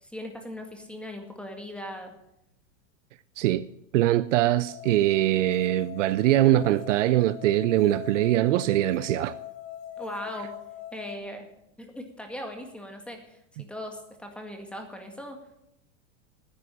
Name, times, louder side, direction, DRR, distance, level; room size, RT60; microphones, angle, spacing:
voice 1, 0.0-2.1 10.0-10.5 10.9-11.5 11.8-15.4, equal, 5° left, 2.0 m, -39 dB
voice 2, 3.9-9.4 13.6-13.7, right 14 dB, 85° right, 0.6 m, -22 dB
sound 1, 4.7-11.2, left 11 dB, 60° left, 2.1 m, -41 dB
10.5 x 9.3 x 9.9 m
supercardioid pair, 140°, 36 cm